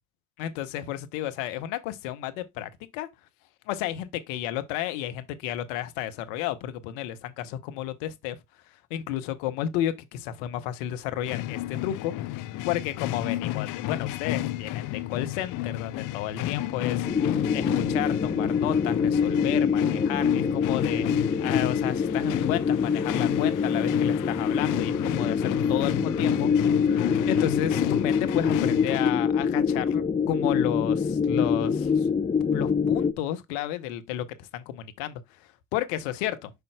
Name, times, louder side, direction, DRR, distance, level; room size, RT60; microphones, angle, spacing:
voice 1, 0.4-3.1 3.7-8.4 8.7-26.9 27.3-32.1 32.5-36.5, left 12 dB, 75° left, 0.9 m, -32 dB
sound 1, 11.2-29.1, left 15 dB, 55° left, 0.5 m, -32 dB
sound 2, 17.0-33.1, left 6 dB, 20° left, 0.7 m, -25 dB
7.8 x 5.3 x 2.2 m
hypercardioid pair, 50°, 39 cm